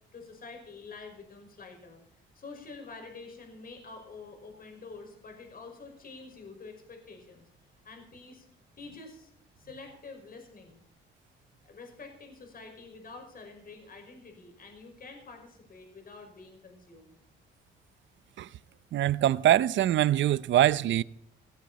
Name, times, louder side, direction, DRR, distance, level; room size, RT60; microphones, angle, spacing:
voice 1, 0.1-2.0 2.3-7.5 7.8-8.5 8.8-9.3 9.6-10.8 11.7-17.1, left 4 dB, 45° left, 5.7 m, -47 dB
voice 2, 18.9-21.0, right 12 dB, 70° right, 0.8 m, -23 dB
17.5 x 17.0 x 4.3 m
cardioid pair, 90°, 20 cm